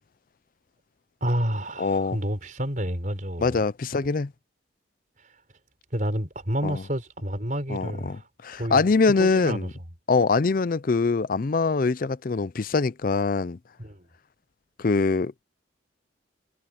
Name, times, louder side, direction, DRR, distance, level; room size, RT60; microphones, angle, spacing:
voice 1, 1.2-3.6 5.9-8.3 8.5-9.7 13.8-14.1, equal, 40° right, 5.0 m, -29 dB
voice 2, 1.8-2.2 3.4-4.3 6.6-6.8 7.7-8.2 8.4-9.7 10.1-13.6 14.8-15.4, left 4 dB, 45° left, 0.5 m, -23 dB
head